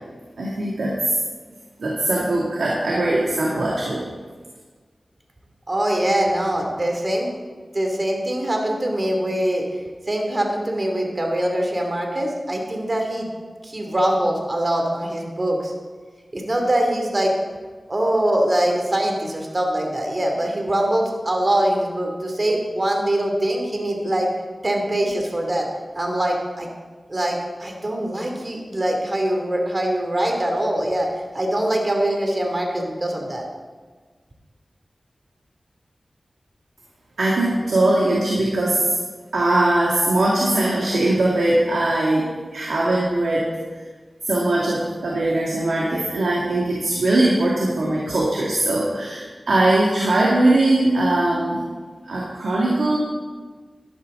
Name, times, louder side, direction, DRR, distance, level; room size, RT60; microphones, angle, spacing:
voice 1, 0.4-1.0 1.8-4.1 37.2-39.0 39.3-43.5 44.2-51.6 52.0-53.0, right 1 dB, 90° right, -4 dB, 1.9 m, -20 dB
voice 2, 5.7-7.3 7.7-9.6 10.1-13.3 13.6-15.7 16.3-17.3 17.9-24.3 24.6-25.7 26.0-26.7 27.1-31.1 31.3-33.4, right 1 dB, 40° right, 1 dB, 2.6 m, -23 dB
12.0 x 11.5 x 3.8 m, 1.4 s
wide cardioid pair, 55°, 0 cm